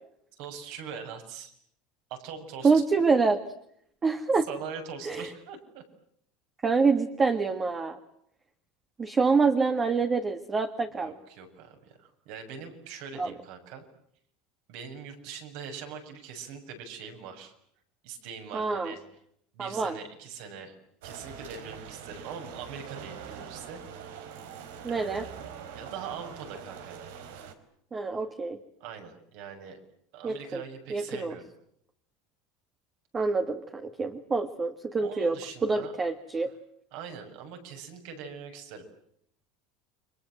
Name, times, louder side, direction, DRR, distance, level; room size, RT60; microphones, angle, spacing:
voice 1, 0.4-1.5 2.1-2.7 4.5-5.8 11.0-13.8 14.7-17.5 18.0-19.0 19.5-20.7 21.0-23.8 24.9-25.4 25.7-27.1 28.8-29.8 30.1-31.5 35.0-35.9 36.9-38.9, right 6 dB, 65° right, 5 dB, 7.1 m, -42 dB
voice 2, 2.6-3.4 4.0-4.5 5.0-5.3 6.6-8.0 9.0-11.1 13.2-13.3 18.5-18.9 19.6-20.0 24.8-25.3 27.9-28.6 30.2-30.6 30.9-31.4 33.1-36.5, right 4 dB, 20° right, 7 dB, 1.7 m, -26 dB
sound 1, 21.0-27.5, right 7 dB, 90° right, 4.2 m, -44 dB
30.0 x 25.0 x 7.9 m, 0.73 s
supercardioid pair, 150°, 0 cm